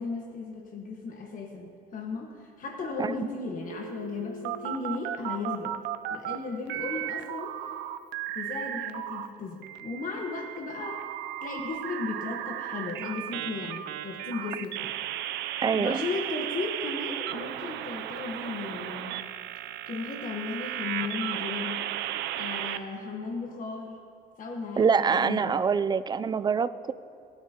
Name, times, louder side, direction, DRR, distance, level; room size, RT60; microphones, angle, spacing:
voice 1, 0.0-5.7 6.1-7.6 8.3-11.0 11.4-15.0 15.7-19.2 19.9-21.8 22.4-24.0 24.4-25.5, left 4 dB, 55° left, 2 dB, 1.3 m, -35 dB
sound 1, 3.7-6.4 6.7-9.3 9.6-22.8, right 12 dB, 80° right, 0.5 m, -35 dB
voice 2, 15.6-16.0 24.8-26.9, right 6 dB, 25° right, 14 dB, 0.4 m, -25 dB
18.5 x 9.4 x 2.9 m, 2.5 s
cardioid pair, 110°, 17 cm